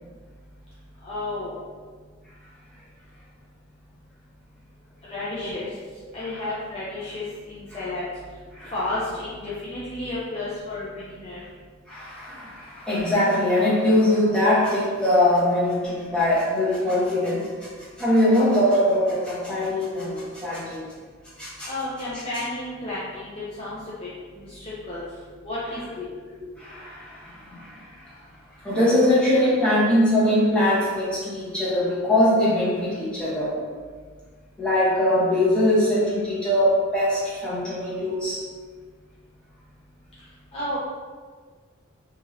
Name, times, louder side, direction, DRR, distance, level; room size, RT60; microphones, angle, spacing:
voice 1, 1.0-1.6 5.1-5.7 6.1-7.2 7.5-8.0 8.7-10.9 11.1-11.4 21.7-23.3 23.6-23.8 24.3-25.0 25.4-26.1 40.5-40.8, left 2 dB, 30° left, -8 dB, 0.5 m, -31 dB
voice 2, 11.9-17.7 18.0-20.8 21.4-21.7 26.3-28.1 28.6-33.5 34.6-38.4, left 1 dB, 5° left, -10 dB, 0.9 m, -22 dB
2.9 x 2.7 x 2.5 m, 1.5 s
head